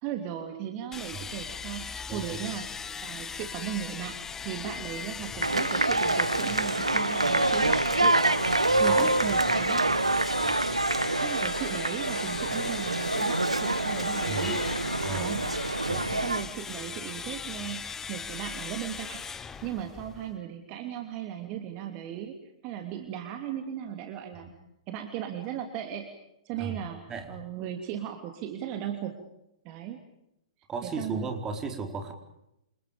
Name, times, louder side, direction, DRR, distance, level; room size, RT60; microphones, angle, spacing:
voice 1, 0.0-2.7 3.0-4.2 4.4-8.2 8.8-9.9 11.2-14.6 15.1-15.4 15.7-19.3 19.6-22.4 22.6-24.5 24.9-26.1 26.4-27.0 27.3-29.2 29.6-30.0 30.8-31.3, right 10 dB, 35° right, 5 dB, 2.9 m, -37 dB
sound 1, 0.9-20.4, left 6 dB, 15° left, 1.4 m, -38 dB
voice 2, 2.1-2.5 8.8-9.2 14.3-14.6 15.0-15.4 15.9-16.1 24.4-24.5 26.6-26.8 27.1-27.4 30.7-32.1, right 4 dB, 20° right, 4 dB, 4.5 m, -35 dB
sound 2, 5.4-16.4, right 2 dB, 85° right, 1.3 m, -26 dB
28.5 x 28.5 x 5.2 m, 0.83 s
figure-of-eight pair, 115°, 3 cm